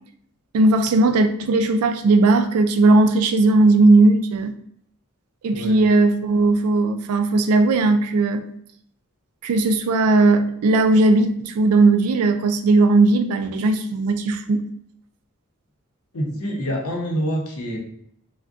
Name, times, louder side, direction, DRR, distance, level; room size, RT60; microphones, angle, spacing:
voice 1, 0.5-4.5 5.4-8.4 9.4-14.6, right 2 dB, 80° right, 8 dB, 0.3 m, -17 dB
voice 2, 16.1-17.8, equal, 85° left, 0 dB, 0.7 m, -26 dB
3.4 x 2.1 x 2.4 m, 0.67 s
head